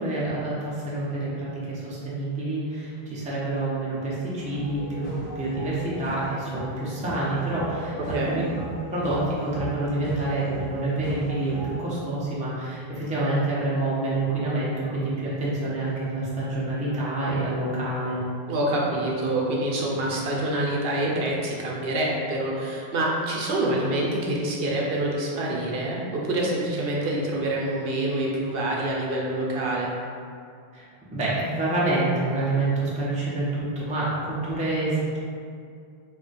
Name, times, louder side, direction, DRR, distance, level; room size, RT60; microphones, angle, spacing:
voice 1, 0.0-8.5 8.9-18.2 30.7-30.8 31.1-35.2, right 2 dB, 10° right, -8 dB, 0.4 m, -27 dB
sound 1, 4.4-11.8, right 1 dB, 45° left, 0.8 m, -37 dB
voice 2, 8.1-8.4 18.5-29.9, right 1 dB, 70° right, -3 dB, 0.8 m, -26 dB
2.4 x 2.1 x 3.8 m, 2.3 s
omnidirectional pair, 1.0 m